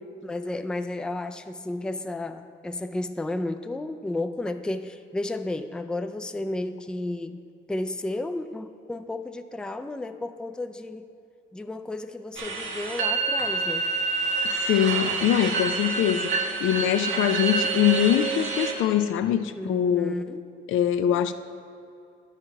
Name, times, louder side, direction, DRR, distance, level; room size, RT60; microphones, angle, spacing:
voice 1, 0.2-7.4 7.7-11.1 11.5-13.9 19.6-20.4, left 2 dB, 5° left, 8 dB, 0.3 m, -32 dB
sound 1, 12.4-18.7, right 4 dB, 85° right, 1.2 m, -27 dB
voice 2, 14.7-16.3 16.6-20.1 20.7-21.3, left 10 dB, 80° left, 10 dB, 0.5 m, -23 dB
10.0 x 5.8 x 4.6 m, 2.4 s
cardioid pair, 90°, 20 cm